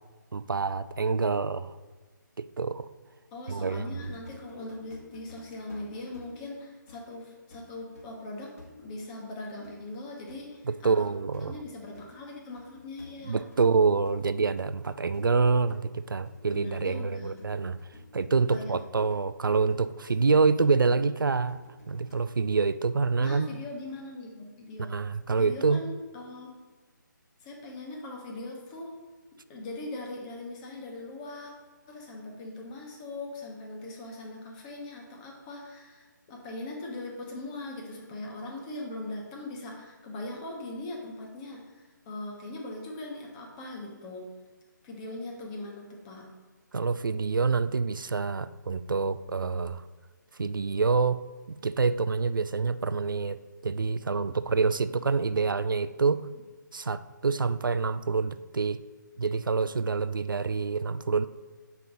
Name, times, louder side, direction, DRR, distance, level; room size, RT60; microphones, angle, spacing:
voice 1, 0.3-1.7 2.4-2.9 3.5-4.0 10.7-11.6 13.3-17.8 18.1-21.6 21.9-23.5 24.8-25.8 46.7-49.8 50.4-51.2 51.5-56.3 56.7-58.8 59.2-61.3, right 4 dB, 85° right, 14 dB, 0.4 m, -26 dB
voice 2, 3.3-10.9 11.4-13.4 16.5-17.3 18.5-18.7 23.2-24.9 25.4-26.5 27.4-29.0 29.5-31.5 31.9-44.3 44.8-46.3, left 2 dB, 20° left, 0 dB, 1.1 m, -40 dB
sound 1, 4.0-22.3, left 2 dB, 45° left, 1.5 m, -54 dB
6.7 x 5.3 x 4.0 m, 1.4 s
figure-of-eight pair, 150°, 11 cm